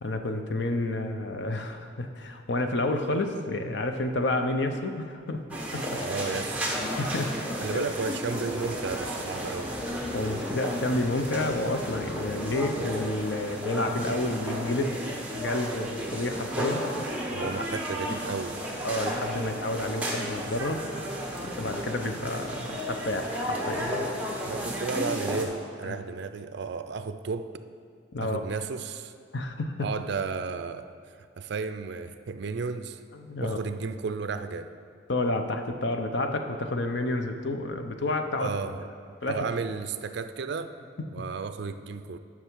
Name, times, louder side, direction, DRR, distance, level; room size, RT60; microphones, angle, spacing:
voice 1, 0.0-5.4 5.7-5.8 7.0-7.8 10.1-15.0 15.3-16.8 17.4-17.7 18.8-20.8 21.6-24.1 25.8-26.0 28.1-28.4 29.3-29.9 33.1-33.6 35.1-38.5 39.2-39.4, left 2 dB, 60° left, 6 dB, 0.7 m, -30 dB
sound 1, 5.5-25.4, equal, 5° right, 1.0 m, -33 dB
voice 2, 6.0-6.6 7.6-9.8 17.3-18.6 24.4-27.5 28.2-29.1 29.8-33.0 33.4-34.7 38.4-38.8 39.3-40.7 41.1-42.2, right 4 dB, 60° right, 10 dB, 0.4 m, -33 dB
10.0 x 6.1 x 4.6 m, 2.2 s
head